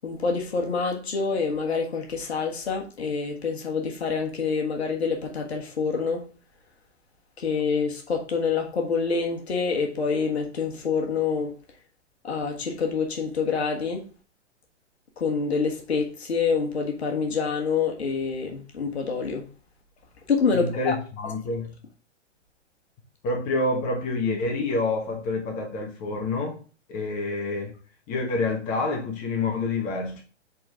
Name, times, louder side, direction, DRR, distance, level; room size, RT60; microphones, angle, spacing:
voice 1, 0.0-6.3 7.4-11.5 12.2-14.1 15.2-19.4 20.3-20.9, left 5 dB, 60° left, 1.6 m, -26 dB
voice 2, 20.5-21.8 23.2-26.6 26.9-27.8 28.1-30.2, left 3 dB, 20° left, 1.4 m, -28 dB
7.5 x 4.0 x 3.6 m
figure-of-eight pair, 115°, 36 cm